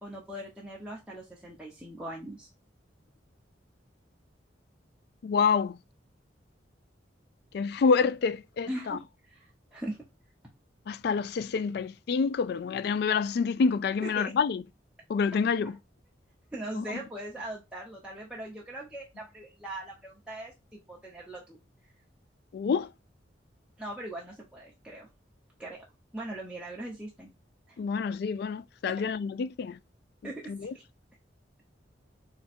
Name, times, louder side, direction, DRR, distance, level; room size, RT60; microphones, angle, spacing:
voice 1, 0.0-2.5 8.7-10.0 14.0-14.3 15.6-15.7 16.5-21.6 23.8-25.1 25.6-25.8 26.1-27.3 27.7-27.8 28.9-29.0 30.2-30.8, right 1 dB, 5° right, 0.9 m, -40 dB
voice 2, 5.2-5.8 7.5-9.0 10.9-14.6 15.1-15.8 16.8-16.9 22.5-22.9 27.8-29.8 30.5-30.7, left 5 dB, 60° left, 0.3 m, -27 dB
3.5 x 3.2 x 4.3 m
head